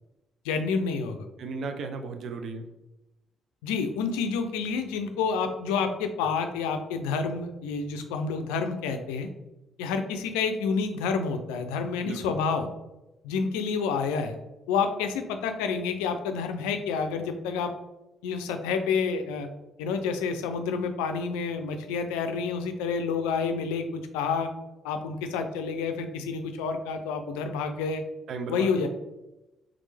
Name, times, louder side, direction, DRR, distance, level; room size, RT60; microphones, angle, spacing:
voice 1, 0.4-1.3 3.6-9.3 9.8-12.7 13.2-14.4 14.7-17.7 18.2-19.5 19.8-24.5 24.8-28.0 28.5-28.9, left 5 dB, 85° left, 7 dB, 0.4 m, -29 dB
voice 2, 1.4-2.7 12.0-12.4 28.3-28.9, right 4 dB, 65° right, 7 dB, 0.5 m, -35 dB
3.7 x 3.3 x 3.3 m, 0.97 s
hypercardioid pair, 50°, 0 cm